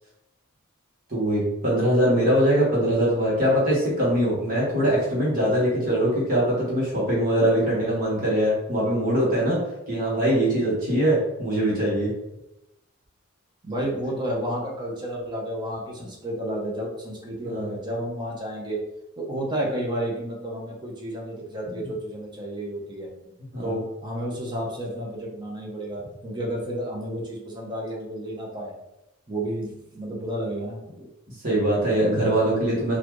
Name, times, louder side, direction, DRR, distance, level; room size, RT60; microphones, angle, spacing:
voice 1, 1.1-9.6 9.9-12.1 17.4-17.7 21.7-21.9 23.5-23.8 31.4-33.0, right 1 dB, 40° right, -6 dB, 1.3 m, -22 dB
voice 2, 13.6-18.8 19.2-23.1 23.6-28.7 29.3-30.8, right 1 dB, 20° right, -3 dB, 0.8 m, -31 dB
4.1 x 2.5 x 3.0 m, 0.91 s
head